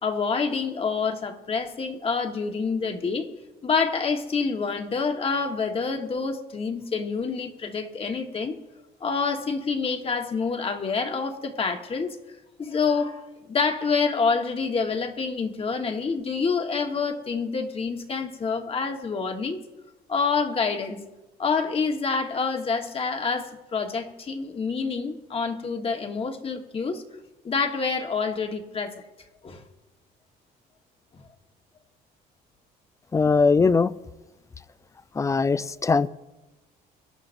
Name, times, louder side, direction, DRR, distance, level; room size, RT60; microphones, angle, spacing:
voice 1, 0.0-3.3 3.6-8.6 9.0-12.2 12.6-19.6 20.1-21.0 21.4-27.0 27.4-28.9 29.4-29.6 31.1-31.2, left 5 dB, 35° left, 5 dB, 1.4 m, -27 dB
voice 2, 33.1-33.9 35.2-36.1, left 4 dB, 20° left, 16 dB, 0.4 m, -20 dB
24.5 x 11.5 x 2.6 m, 1.1 s
cardioid pair, 110°, 17 cm